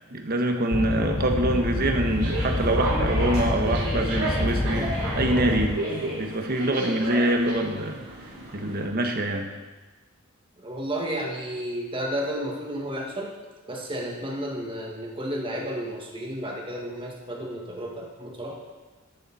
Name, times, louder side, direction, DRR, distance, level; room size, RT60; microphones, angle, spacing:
voice 1, 0.1-8.0 8.5-9.5, right 1 dB, 45° right, 4 dB, 1.1 m, -25 dB
sound 1, 0.7-5.8, left 1 dB, 15° left, 0.4 m, -27 dB
sound 2, 2.0-8.8, right 1 dB, 85° right, 3.5 m, -32 dB
voice 2, 10.6-13.3 13.6-18.5, equal, 25° right, -1 dB, 1.7 m, -32 dB
13.0 x 6.9 x 4.1 m, 1.2 s
head